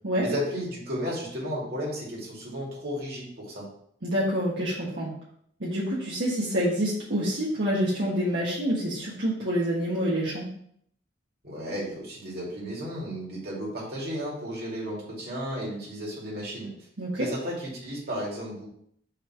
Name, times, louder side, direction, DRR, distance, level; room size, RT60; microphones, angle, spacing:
voice 1, 0.2-3.6 11.4-16.7 17.2-18.7, equal, 55° right, -4 dB, 2.6 m, -33 dB
voice 2, 4.0-5.1 5.6-10.5 17.0-17.2, equal, 75° right, -8 dB, 1.6 m, -27 dB
5.6 x 3.5 x 5.7 m, 0.68 s
head